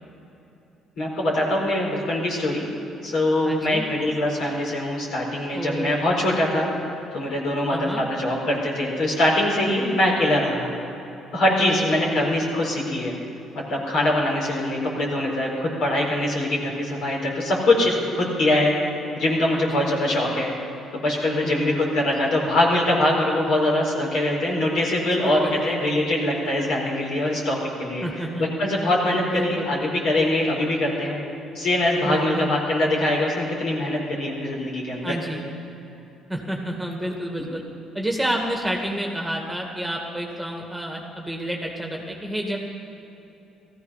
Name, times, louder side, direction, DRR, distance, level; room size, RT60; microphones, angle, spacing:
voice 1, 1.0-2.6 3.0-6.7 7.1-10.7 11.3-13.1 13.5-18.7 19.1-20.5 20.9-28.1 28.4-31.2 31.5-35.1, left 1 dB, 65° left, -2 dB, 4.5 m, -23 dB
voice 2, 3.4-3.8 5.5-6.0 7.7-8.0 11.6-12.0 19.5-19.9 21.4-21.8 25.2-25.8 28.0-28.4 29.3-29.7 32.0-32.5 35.0-35.4 36.3-37.6 37.9-42.6, right 1 dB, 5° right, 1 dB, 2.0 m, -29 dB
17.0 x 14.5 x 5.7 m, 3.0 s
cardioid pair, 90°, 0 cm